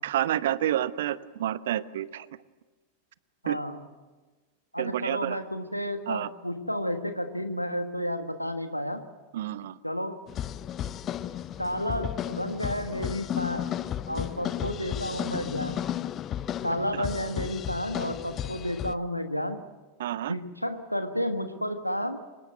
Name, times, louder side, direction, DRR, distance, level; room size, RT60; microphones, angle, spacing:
voice 1, 0.0-2.3 3.5-3.6 4.8-5.4 6.1-6.3 9.3-9.8 20.0-20.3, right 12 dB, 60° right, 17 dB, 0.9 m, -29 dB
voice 2, 3.4-3.8 4.7-9.0 9.8-10.2 11.6-13.7 14.1-15.8 16.6-19.6 20.3-22.2, equal, 90° left, 9 dB, 1.4 m, -31 dB
sound 1, 10.3-18.9, left 10 dB, 30° left, 0.7 m, -33 dB
24.5 x 21.0 x 8.0 m, 1.3 s
figure-of-eight pair, 90°, 0 cm